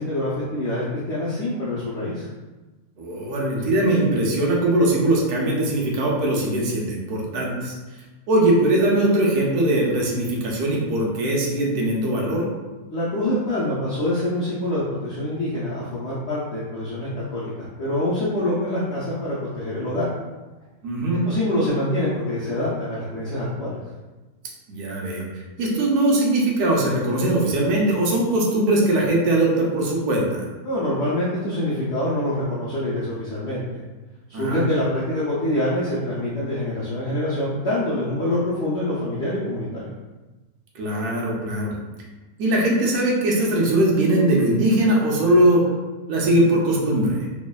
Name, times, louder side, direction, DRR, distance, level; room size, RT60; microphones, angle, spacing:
voice 1, 0.0-2.3 12.9-20.1 21.2-23.8 30.6-33.8 34.3-39.9, left 1 dB, 75° left, -8 dB, 0.6 m, -25 dB
voice 2, 3.0-7.7 8.3-12.5 20.8-21.2 24.7-25.3 25.6-30.5 34.3-34.6 40.7-41.8 42.4-45.6 46.1-47.3, right 1 dB, 70° right, -2 dB, 1.1 m, -20 dB
3.1 x 2.0 x 2.2 m, 1.2 s
omnidirectional pair, 1.8 m